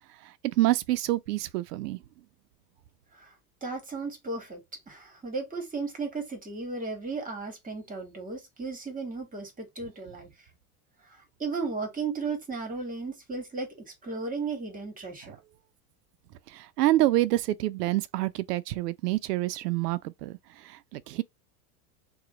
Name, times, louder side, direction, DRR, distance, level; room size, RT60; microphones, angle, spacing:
voice 1, 0.4-2.0 15.2-15.3 16.5-20.4 20.6-21.2, right 16 dB, 85° right, 0.6 m, -27 dB
voice 2, 3.6-4.6 4.9-10.3 11.1-13.7 14.0-15.4, right 4 dB, 15° right, 1.5 m, -35 dB
2.9 x 2.3 x 3.9 m
supercardioid pair, 115°, 46 cm